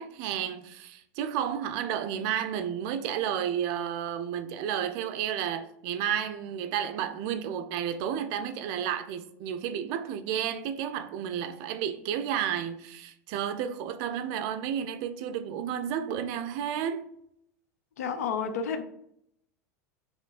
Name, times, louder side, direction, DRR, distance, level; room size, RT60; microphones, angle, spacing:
voice 1, 0.0-17.0, right 9 dB, 55° right, 0.4 m, -32 dB
voice 2, 18.0-18.8, left 6 dB, 75° left, 0.5 m, -30 dB
3.2 x 2.9 x 4.0 m
hypercardioid pair, 85°, 9 cm